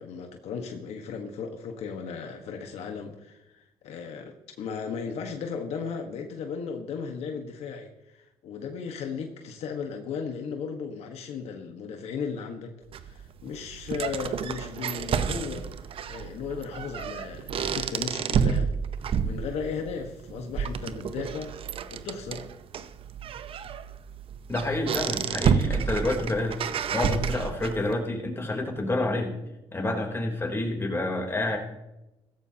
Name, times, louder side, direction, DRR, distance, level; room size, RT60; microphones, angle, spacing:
voice 1, 0.0-12.7 13.0-15.7 16.1-18.7 19.2-21.5 21.9-22.5, left 6 dB, 75° left, 4 dB, 1.4 m, -36 dB
sound 1, 12.9-27.9, right 7 dB, 55° right, 0.8 m, -30 dB
voice 2, 24.5-29.3 29.7-31.6, left 2 dB, 20° left, 1 dB, 3.5 m, -28 dB
15.5 x 14.5 x 2.9 m, 0.96 s
cardioid pair, 85°, 11 cm